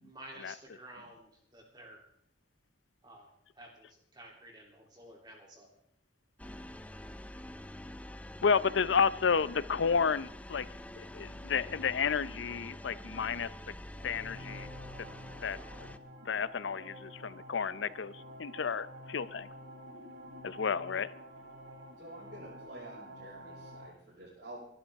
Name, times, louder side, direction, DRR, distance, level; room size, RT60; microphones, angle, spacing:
voice 1, 0.0-2.0 3.0-3.3 3.6-5.7, right 1 dB, 25° right, -1 dB, 3.1 m, -52 dB
sound 1, 6.4-16.0, left 1 dB, 10° left, 0.5 m, -46 dB
voice 2, 8.4-10.7 11.0-13.7 14.0-14.7 15.4-15.6 16.3-19.5 20.4-21.1, left 6 dB, 90° left, 17 dB, 0.6 m, -31 dB
sound 2, 13.9-23.9, equal, 85° right, 3.4 m, -49 dB
voice 3, 22.0-24.6, right 1 dB, 65° right, -8 dB, 5.9 m, -49 dB
25.5 x 11.5 x 3.6 m, 0.70 s
head